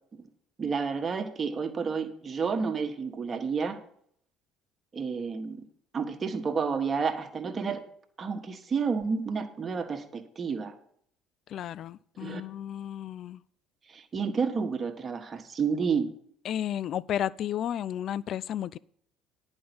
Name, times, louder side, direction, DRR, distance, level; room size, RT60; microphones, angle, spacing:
voice 1, 0.6-3.8 4.9-5.6 5.9-7.8 8.2-10.7 12.2-12.4 13.9-16.1, right 5 dB, 35° right, 5 dB, 1.4 m, -30 dB
voice 2, 11.5-13.4 16.4-18.8, left 10 dB, 50° left, 20 dB, 0.4 m, -33 dB
10.0 x 5.4 x 7.8 m, 0.64 s
hypercardioid pair, 60°, 0 cm